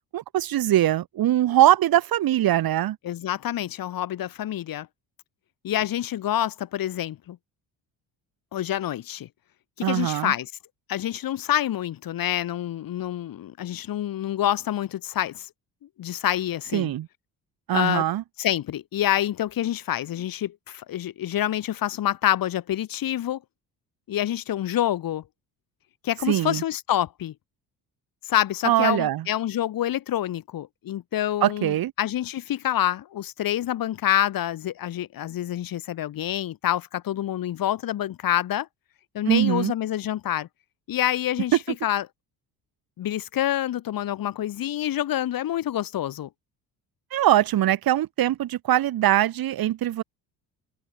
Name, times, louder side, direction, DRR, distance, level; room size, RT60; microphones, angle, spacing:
voice 1, 0.1-3.0 9.8-10.3 16.7-17.1 17.7-18.2 26.3-26.6 28.7-29.2 31.4-31.9 39.3-39.7 47.1-50.0, right 13 dB, 65° right, 3.5 m, -22 dB
voice 2, 3.0-4.9 5.6-7.4 8.5-9.3 9.8-10.5 10.9-15.5 16.0-16.9 17.7-18.0 18.4-23.4 24.1-25.2 26.0-27.3 28.2-38.7 39.1-40.5 40.9-42.1 43.0-46.3, left 12 dB, 60° left, 3.8 m, -27 dB
cardioid pair, 125°, 39 cm